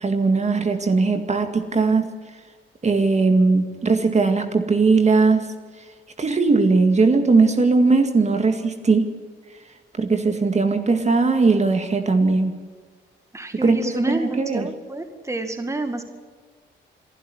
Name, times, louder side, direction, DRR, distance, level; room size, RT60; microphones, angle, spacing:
voice 1, 0.0-2.1 2.8-5.5 6.2-9.1 10.0-12.6 13.6-14.7, right 3 dB, 35° right, 6 dB, 2.1 m, -19 dB
voice 2, 13.3-16.0, right 2 dB, 15° right, 6 dB, 2.0 m, -29 dB
27.0 x 12.0 x 9.6 m, 1.5 s
cardioid pair, 85°, 20 cm